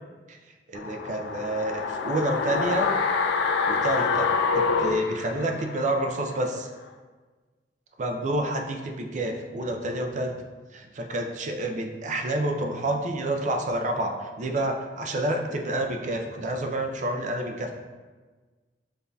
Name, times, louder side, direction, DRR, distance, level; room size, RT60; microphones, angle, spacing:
sound 1, 0.7-5.9 6.2-6.3, left 4 dB, 65° left, 0.3 m, -26 dB
voice 1, 0.7-2.9 3.6-6.7 8.0-10.3 10.7-17.7, right 1 dB, 45° right, 3 dB, 0.4 m, -29 dB
6.8 x 2.6 x 2.3 m, 1.3 s
head